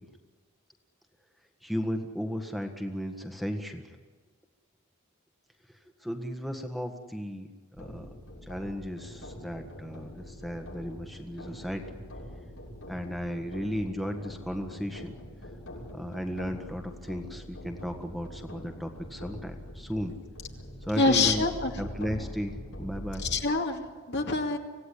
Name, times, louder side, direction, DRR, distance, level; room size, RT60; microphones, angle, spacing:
voice 1, 1.6-3.8 6.0-7.5 7.8-8.0 8.5-11.8 12.9-15.1 15.9-20.1 20.9-21.4 21.8-23.3, equal, ahead, 4 dB, 1.6 m, -35 dB
sound 1, 7.7-23.4, equal, 80° left, 7.2 m, -44 dB
voice 2, 21.0-21.7 23.2-24.6, left 3 dB, 55° left, 3 dB, 2.4 m, -26 dB
25.5 x 17.0 x 10.0 m, 1.4 s
head